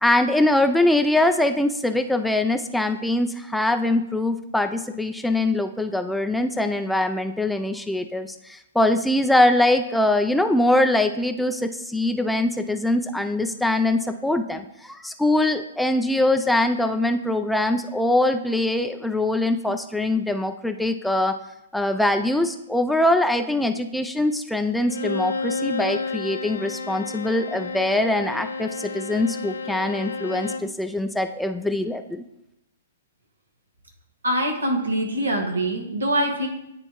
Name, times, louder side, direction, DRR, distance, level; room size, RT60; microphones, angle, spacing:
voice 1, 0.0-21.3 21.7-32.2, left 1 dB, 5° left, 7 dB, 0.3 m, -22 dB
Bowed string instrument, 24.8-30.8, left 4 dB, 80° left, 0.5 m, -31 dB
voice 2, 34.2-36.5, right 1 dB, 85° right, 3 dB, 1.4 m, -24 dB
9.8 x 3.5 x 3.0 m, 0.85 s
figure-of-eight pair, 120°, 0 cm